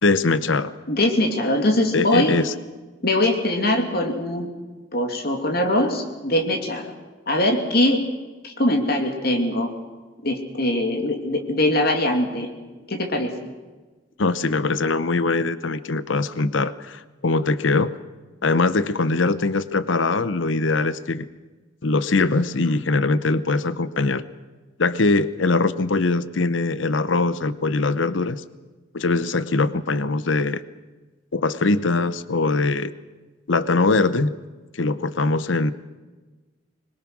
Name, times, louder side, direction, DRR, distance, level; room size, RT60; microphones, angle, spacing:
voice 1, 0.0-0.7 1.9-2.5 14.2-18.0 18.4-21.2 21.8-24.2 24.8-28.4 28.9-30.6 31.3-32.9 33.5-34.3 34.7-35.7, left 3 dB, 75° left, 14 dB, 0.8 m, -22 dB
voice 2, 0.9-2.3 3.0-4.5 4.9-6.9 7.3-8.0 8.4-9.7 10.2-12.5 12.9-13.3, left 1 dB, 55° left, 3 dB, 2.6 m, -22 dB
25.5 x 22.0 x 6.2 m, 1.3 s
head